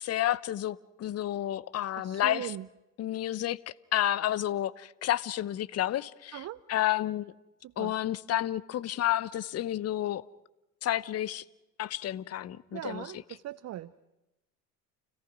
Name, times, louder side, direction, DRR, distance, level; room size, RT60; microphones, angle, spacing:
voice 1, 0.0-2.5 3.0-3.6 3.9-7.3 7.8-10.2 10.8-11.4 11.8-13.1, left 13 dB, 30° left, 0.8 m, -30 dB
voice 2, 2.0-2.7 6.3-6.6 7.6-7.9 12.7-13.9, right 13 dB, 35° right, 0.7 m, -40 dB
30.0 x 18.0 x 6.1 m
hypercardioid pair, 75°, 47 cm